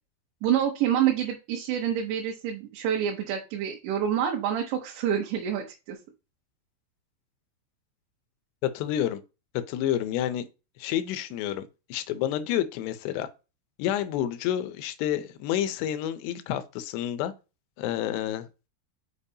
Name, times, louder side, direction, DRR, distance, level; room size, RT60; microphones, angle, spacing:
voice 1, 0.4-6.0, right 9 dB, 85° right, 3.2 m, -27 dB
voice 2, 8.6-9.2 9.5-10.5 10.8-13.3 13.8-17.3 17.8-18.5, left 11 dB, 80° left, 2.6 m, -29 dB
6.8 x 5.2 x 2.7 m
omnidirectional pair, 5.1 m